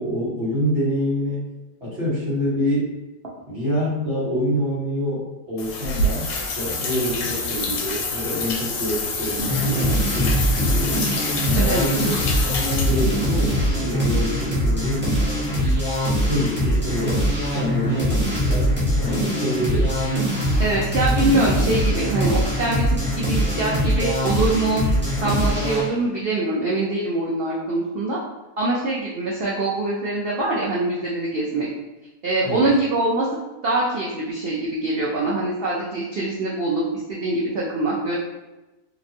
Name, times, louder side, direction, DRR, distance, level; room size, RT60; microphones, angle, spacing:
voice 1, 0.0-1.4 1.8-2.9 3.5-11.0 11.4-12.0 12.4-15.2 16.0-20.1 32.4-32.7, equal, 45° right, -9 dB, 1.6 m, -26 dB
sound 1, 5.6-13.4, left 2 dB, 80° left, 1.1 m, -27 dB
sound 2, 9.4-25.9, equal, 10° right, 0.6 m, -22 dB
voice 2, 20.6-22.9 23.2-24.8 25.2-28.2 28.6-31.7 32.2-33.3 33.6-36.8 37.1-38.2, right 2 dB, 90° right, -5 dB, 0.5 m, -23 dB
3.1 x 2.5 x 2.6 m, 1.1 s
omnidirectional pair, 1.6 m